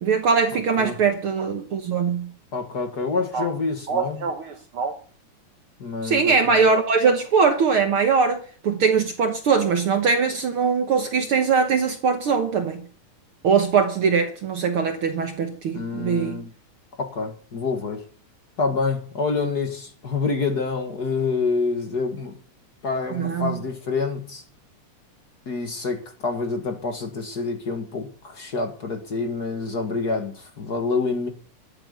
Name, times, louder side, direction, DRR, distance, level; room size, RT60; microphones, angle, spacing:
voice 1, 0.0-2.3 3.3-3.5 3.9-4.9 6.0-12.8 13.4-16.4 23.1-23.5, right 5 dB, 60° right, 1.5 m, -21 dB
voice 2, 2.5-4.3 5.8-6.6 15.7-16.5 17.0-18.1 18.6-22.4 22.8-24.4 25.4-31.3, left 4 dB, 45° left, 1.4 m, -27 dB
13.0 x 7.8 x 8.1 m
omnidirectional pair, 3.8 m